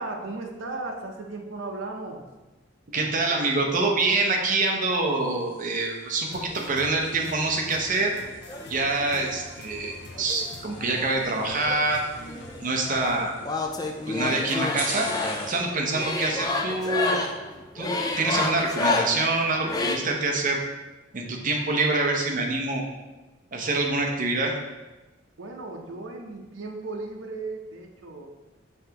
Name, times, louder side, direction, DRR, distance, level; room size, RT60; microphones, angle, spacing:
voice 1, 0.0-2.2 25.4-28.3, right 2 dB, 90° right, 2 dB, 0.6 m, -36 dB
voice 2, 2.9-8.1 8.7-12.0 12.6-13.3 14.1-15.1 15.5-17.2 17.7-17.9 18.2-20.6 21.1-22.8 23.5-24.5, right 3 dB, 45° right, 1 dB, 0.7 m, -25 dB
sound 1, 5.0-15.7, right 1 dB, 10° right, 0.8 m, -43 dB
sound 2, 6.3-13.2, left 2 dB, 65° left, 0.6 m, -44 dB
sound 3, 8.5-9.3 10.2-11.3 11.6-20.0, left 2 dB, 20° left, 0.3 m, -29 dB
5.5 x 3.4 x 2.8 m, 1.1 s
head